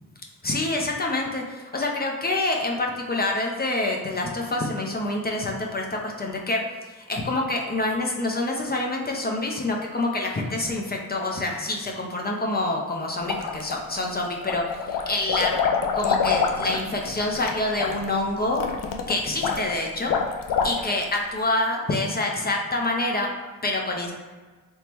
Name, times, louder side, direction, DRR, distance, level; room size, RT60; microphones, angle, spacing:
voice 1, 0.4-6.6 6.9-15.6 15.9-18.6 19.1-20.1 20.6-24.1, left 2 dB, 30° left, 0 dB, 0.6 m, -27 dB
sound 1, 13.2-14.0 14.4-21.1, left 6 dB, 75° left, 0.5 m, -26 dB
3.5 x 2.9 x 2.9 m, 1.4 s
cardioid pair, 65°, 33 cm